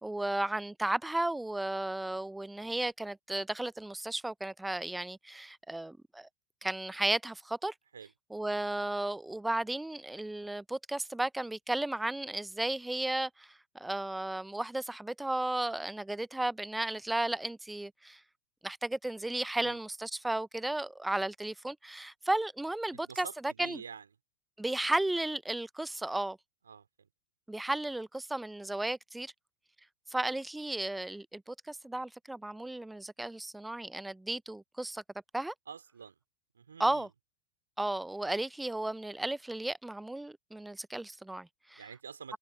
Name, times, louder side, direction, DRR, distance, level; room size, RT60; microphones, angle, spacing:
voice 1, 0.0-6.3 6.6-7.7 8.3-18.2 18.6-23.8 24.6-26.4 27.5-29.3 30.1-35.0 35.3-35.5 36.8-37.1 37.8-41.8, right 2 dB, 5° right, 0.9 m, -34 dB
voice 2, 22.9-24.1 26.7-27.1 35.7-36.2 36.5-37.1 41.8-42.4, right 6 dB, 70° right, 4.2 m, -47 dB
figure-of-eight pair, 90°, 0 cm